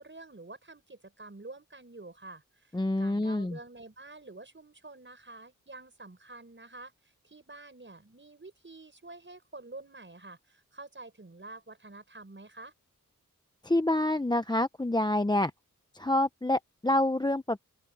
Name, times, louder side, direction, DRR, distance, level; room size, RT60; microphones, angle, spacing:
voice 1, 0.0-12.7, right 2 dB, 35° right, 5.9 m, -48 dB
voice 2, 2.7-3.6 13.6-15.5 15.9-17.6, left 1 dB, 15° left, 0.7 m, -27 dB
open air
wide cardioid pair, 75°, 32 cm